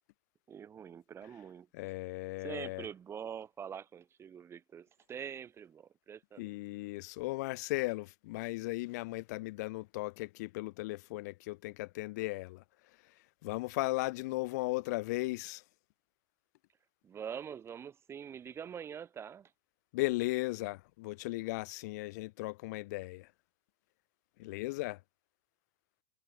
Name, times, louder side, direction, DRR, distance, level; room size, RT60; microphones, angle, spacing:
voice 1, 0.5-1.7 2.4-6.5 17.0-19.5, right 8 dB, 25° right, 4.2 m, -44 dB
voice 2, 1.7-2.9 6.4-15.6 19.9-23.3 24.4-25.0, left 21 dB, 60° left, 2.9 m, -37 dB
hypercardioid pair, 105°, 10 cm